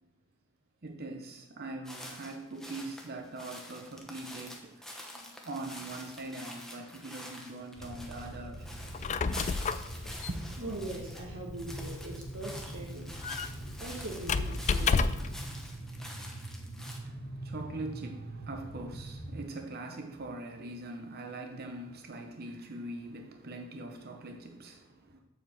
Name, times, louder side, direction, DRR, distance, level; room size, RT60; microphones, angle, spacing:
voice 1, 0.8-8.8 10.3-10.5 16.7-25.2, right 2 dB, 50° right, 3 dB, 0.8 m, -42 dB
sound 1, 1.8-11.3 11.5-17.0, left 1 dB, ahead, 1.1 m, -47 dB
sound 2, 7.7-19.4, right 1 dB, 70° left, 2.3 m, -43 dB
Squeak, 8.8-15.4, left 5 dB, 35° left, 0.3 m, -32 dB
voice 2, 10.6-13.5 13.8-15.4, right 2 dB, 80° right, -3 dB, 1.4 m, -42 dB
7.4 x 5.0 x 7.0 m, 0.92 s
head